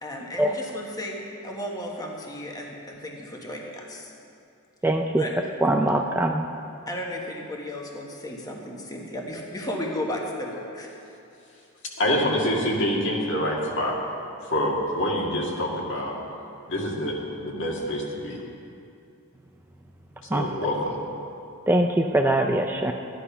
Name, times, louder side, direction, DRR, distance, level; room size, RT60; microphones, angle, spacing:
voice 1, 0.0-4.1 5.2-5.3 6.9-10.9, left 1 dB, 15° left, -1 dB, 1.4 m, -34 dB
voice 2, 4.8-5.2 5.6-6.5 20.3-20.5 21.7-22.9, right 1 dB, 10° right, 3 dB, 0.4 m, -22 dB
voice 3, 12.0-14.0 14.5-16.1 16.7-18.4 20.2-21.0, left 1 dB, 55° left, -2 dB, 2.2 m, -26 dB
15.0 x 10.0 x 5.6 m, 2.6 s
head